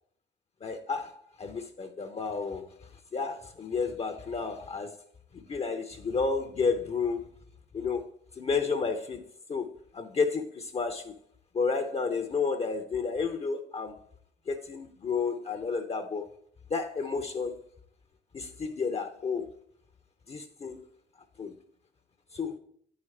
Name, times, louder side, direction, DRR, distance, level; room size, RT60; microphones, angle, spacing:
voice 1, 0.6-5.0 5.3-7.3 7.7-8.1 8.4-9.2 9.5-11.2 11.5-14.0 14.5-16.3 16.7-17.6 18.3-19.5 20.3-20.8 21.4-21.5 22.3-22.6, left 5 dB, 30° left, 0.5 m, -31 dB
9.3 x 4.8 x 3.2 m
cardioid pair, 90°, 20 cm